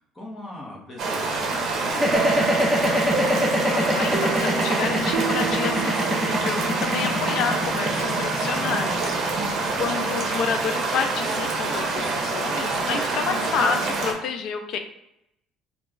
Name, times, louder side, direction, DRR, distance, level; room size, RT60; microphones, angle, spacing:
voice 1, 0.0-2.9 9.5-9.9, left 1 dB, 20° left, -4 dB, 1.0 m, -41 dB
sound 1, 1.0-14.1, right 3 dB, 50° right, 0.8 m, -26 dB
sound 2, 1.9-12.1, equal, ahead, 0.6 m, -25 dB
sound 3, 2.1-6.8, right 6 dB, 70° right, 0.3 m, -31 dB
voice 2, 3.7-9.1 9.8-14.8, left 6 dB, 55° left, 7 dB, 0.4 m, -29 dB
3.0 x 2.3 x 3.7 m, 0.80 s
cardioid pair, 145°, 0 cm